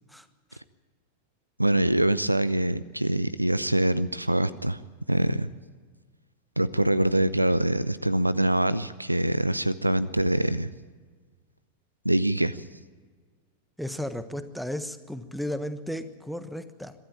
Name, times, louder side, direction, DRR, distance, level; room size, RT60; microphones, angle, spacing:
voice 1, 1.6-4.8 5.1-5.5 6.6-10.7 12.0-12.6, right 1 dB, 85° right, 18 dB, 0.5 m, -24 dB
voice 2, 13.8-16.9, left 1 dB, ahead, 12 dB, 1.2 m, -34 dB
23.0 x 13.0 x 8.9 m, 1.5 s
figure-of-eight pair, 90°, 0 cm